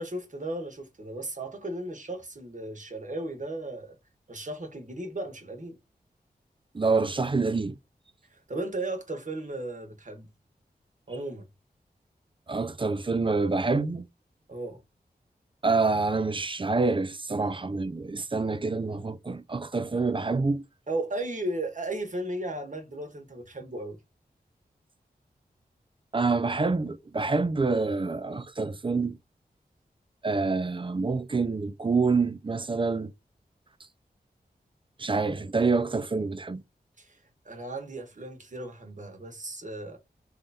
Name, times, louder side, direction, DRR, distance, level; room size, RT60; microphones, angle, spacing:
voice 1, 0.0-4.0 4.3-5.8 8.3-10.3 11.1-11.5 14.5-14.8 20.9-24.0 37.0-37.2 37.4-40.0, right 1 dB, 50° right, 1.4 m, -35 dB
voice 2, 6.7-7.8 12.5-14.0 15.6-20.6 26.1-29.2 30.2-33.1 35.0-36.6, right 4 dB, 30° right, 0.5 m, -27 dB
3.5 x 2.7 x 3.5 m
cardioid pair, 45°, 17 cm